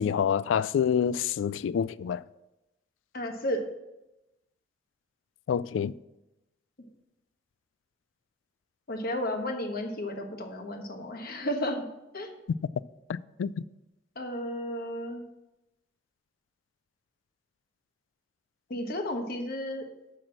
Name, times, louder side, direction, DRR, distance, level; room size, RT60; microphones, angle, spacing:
voice 1, 0.0-2.2 5.5-5.9 13.1-13.5, left 7 dB, 75° left, 0.3 m, -27 dB
voice 2, 3.1-3.7 8.9-11.9 12.1-12.3 14.1-15.2 18.7-19.9, left 1 dB, 55° left, 1.2 m, -33 dB
6.5 x 6.1 x 7.5 m
head